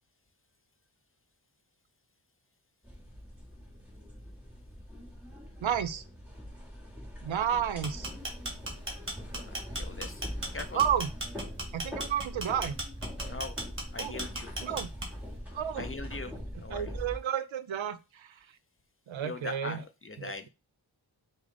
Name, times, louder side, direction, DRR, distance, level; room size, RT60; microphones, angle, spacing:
sound 1, 2.8-17.2, equal, 5° right, 1.5 m, -42 dB
voice 1, 5.6-6.0 7.2-8.1 10.7-11.1 11.7-12.7 14.0-14.1 14.6-14.9 15.5-15.8 16.7-18.4 19.1-19.8 20.2-20.3, right 9 dB, 75° right, 0.5 m, -31 dB
sound 2, 7.7-15.3, right 1 dB, 25° right, 1.2 m, -37 dB
voice 2, 9.4-10.2 10.5-10.8 13.2-13.6 13.9-14.5 15.7-16.9 19.2-20.5, left 3 dB, 30° left, 0.5 m, -41 dB
4.9 x 2.0 x 3.8 m
wide cardioid pair, 70°, 46 cm